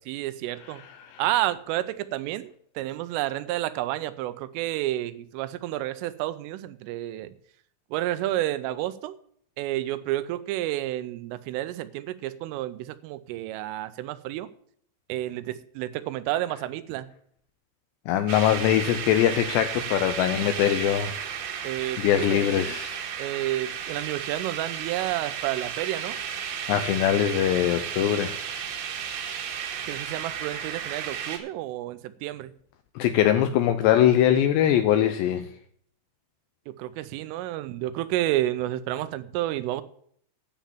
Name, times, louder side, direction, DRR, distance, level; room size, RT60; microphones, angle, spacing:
voice 1, 0.1-0.8 1.2-7.3 7.9-9.2 9.6-14.5 15.1-17.1 21.6-22.7 23.2-26.2 29.9-32.5 36.7-39.8, right 15 dB, 90° right, 3.3 m, -30 dB
voice 2, 0.6-1.2 18.1-21.1 21.6-23.1 26.7-28.6 33.0-35.5, left 11 dB, 85° left, 2.5 m, -23 dB
sound 1, 18.3-31.4, right 8 dB, 70° right, 3.6 m, -34 dB
10.5 x 7.3 x 7.2 m
omnidirectional pair, 5.6 m